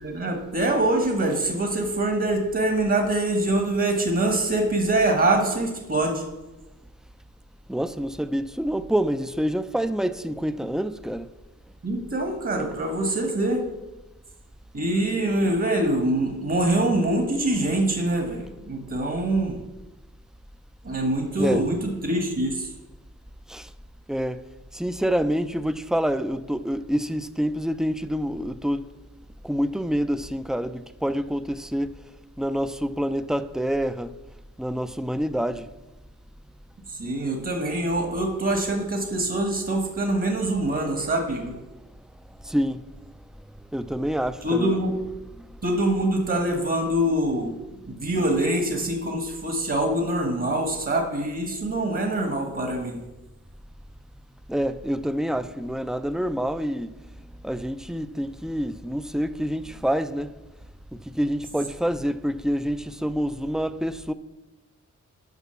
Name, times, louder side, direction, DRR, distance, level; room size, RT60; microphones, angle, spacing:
voice 1, 0.0-6.2 11.8-13.6 14.7-19.6 20.8-22.7 36.9-41.6 44.4-45.0 45.6-47.5 47.9-53.0, right 1 dB, 45° right, 1.4 m, -24 dB
voice 2, 7.7-11.3 21.4-21.6 23.5-23.7 24.1-24.4 24.7-28.8 29.4-31.9 32.4-34.1 34.6-35.7 42.4-42.9 43.7-44.7 45.4-45.5 54.5-56.9 57.4-60.3 60.9-64.1, equal, ahead, 0.4 m, -27 dB
8.2 x 5.1 x 6.9 m
cardioid pair, 75°, 31 cm